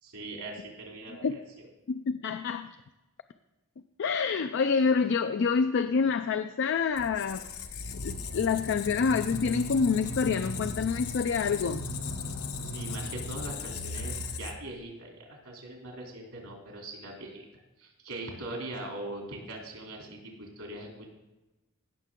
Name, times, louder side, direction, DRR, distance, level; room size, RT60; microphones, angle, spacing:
voice 1, 0.0-1.7 12.6-21.1, right 2 dB, 75° right, 0 dB, 3.2 m, -41 dB
voice 2, 1.9-2.7 4.0-7.5 8.0-11.8, left 5 dB, 55° left, 9 dB, 0.4 m, -27 dB
Squeak, 7.0-14.8, left 3 dB, 75° left, 1.0 m, -36 dB
16.5 x 6.7 x 3.7 m, 1.0 s
head